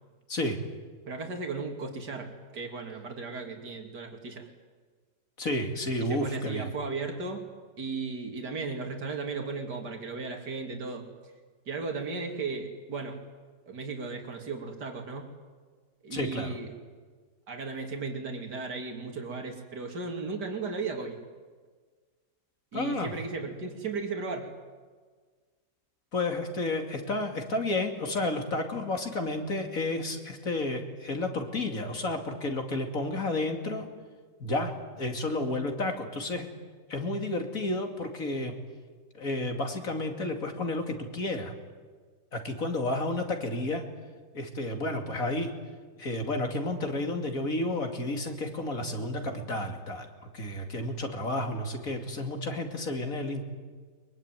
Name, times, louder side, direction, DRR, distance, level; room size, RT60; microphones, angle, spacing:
voice 1, 1.0-4.5 6.0-7.4 7.8-11.1 11.6-13.2 13.7-15.3 16.0-16.7 17.5-21.2 22.7-24.5, right 4 dB, 70° right, 3 dB, 3.3 m, -35 dB
voice 2, 5.4-6.7 16.1-16.6 22.7-23.1 26.1-33.9 34.4-34.7 35.0-36.5 36.9-38.5 39.2-41.5 42.3-43.8 44.3-45.5 46.0-50.1 50.3-53.5, left 2 dB, 50° left, 4 dB, 3.0 m, -31 dB
23.0 x 23.0 x 9.2 m, 1.5 s
omnidirectional pair, 1.9 m